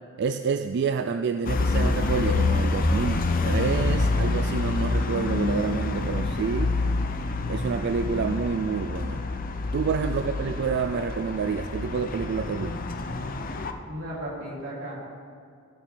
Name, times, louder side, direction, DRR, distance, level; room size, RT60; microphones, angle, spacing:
voice 1, 0.2-6.7 7.5-9.2 9.7-12.8, right 5 dB, 55° right, 8 dB, 0.3 m, -28 dB
sound 1, 1.4-13.7, left 3 dB, 45° left, 0.6 m, -27 dB
voice 2, 13.9-15.0, right 1 dB, 90° right, -4 dB, 2.9 m, -35 dB
16.0 x 8.4 x 3.4 m, 2.4 s
head